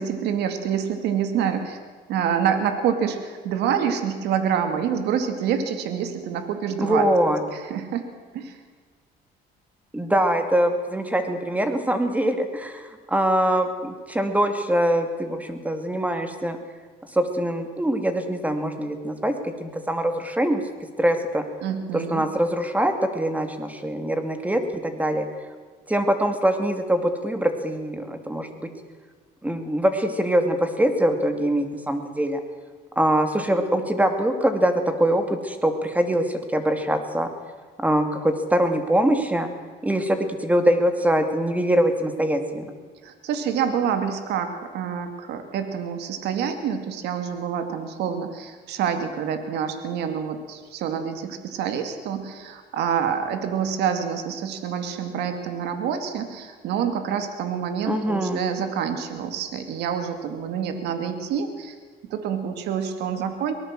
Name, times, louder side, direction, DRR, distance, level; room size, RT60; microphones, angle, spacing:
voice 1, 0.0-1.8 2.1-7.1 7.5-8.0 8.3-8.6 21.6-22.2 43.0-61.7 62.1-63.5, right 8 dB, 80° right, 7 dB, 2.4 m, -27 dB
voice 2, 6.8-7.4 9.9-16.6 17.1-20.6 21.0-21.4 21.9-25.3 25.9-28.7 29.4-32.4 33.0-34.7 35.0-37.3 37.8-39.5 39.8-42.7 57.9-58.4, right 1 dB, 10° right, 7 dB, 2.7 m, -23 dB
23.5 x 19.0 x 7.6 m, 1.5 s
cardioid pair, 110°, 17 cm